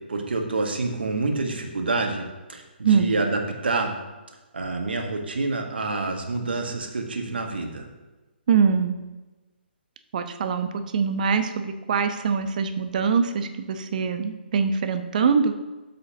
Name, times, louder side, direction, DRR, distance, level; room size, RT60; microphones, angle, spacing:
voice 1, 0.1-4.0 4.5-7.9, right 3 dB, 70° right, 3 dB, 1.7 m, -27 dB
voice 2, 8.5-9.0 10.1-10.7 10.9-15.5, right 6 dB, 45° right, 8 dB, 0.9 m, -23 dB
12.5 x 7.5 x 2.9 m, 1.2 s
figure-of-eight pair, 135°, 6 cm